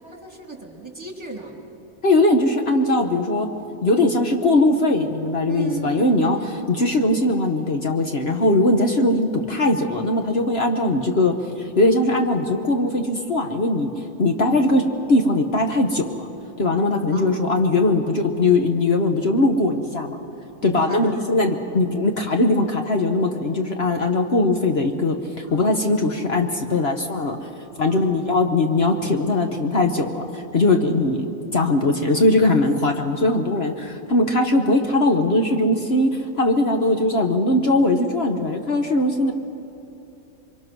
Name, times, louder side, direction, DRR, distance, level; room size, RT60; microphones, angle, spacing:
voice 1, 0.0-1.6 3.9-4.1 5.5-6.8 17.1-17.8 20.6-21.7 25.5-25.8 26.7-27.2 27.9-28.2 37.1-37.2 39.1-39.3, right 4 dB, 20° right, 2 dB, 2.9 m, -36 dB
voice 2, 2.0-3.5 3.8-6.4 6.7-13.9 14.2-14.8 15.1-16.3 16.6-20.2 20.6-27.5 27.8-31.2 31.5-39.3, left 2 dB, 50° left, 4 dB, 1.4 m, -20 dB
28.0 x 23.5 x 6.2 m, 2.7 s
omnidirectional pair, 1.4 m